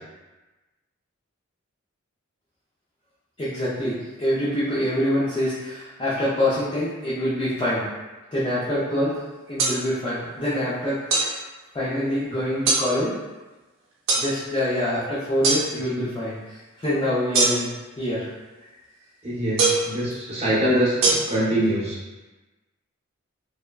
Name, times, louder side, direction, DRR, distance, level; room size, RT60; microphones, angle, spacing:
voice 1, 3.4-7.9 8.3-9.2 9.5-11.4 11.7-13.2 14.2-17.7 18.0-18.3, left 1 dB, 25° left, -11 dB, 0.4 m, -25 dB
sound 1, 9.6-9.8 11.1-11.3 12.7-12.8 14.1-14.3 15.4-15.6 17.3-17.8 19.6-19.9 21.0-21.1, right 3 dB, 70° right, 0.7 m, -20 dB
voice 2, 19.2-22.0, equal, 30° right, -8 dB, 0.8 m, -24 dB
3.2 x 2.1 x 2.3 m, 1.2 s
head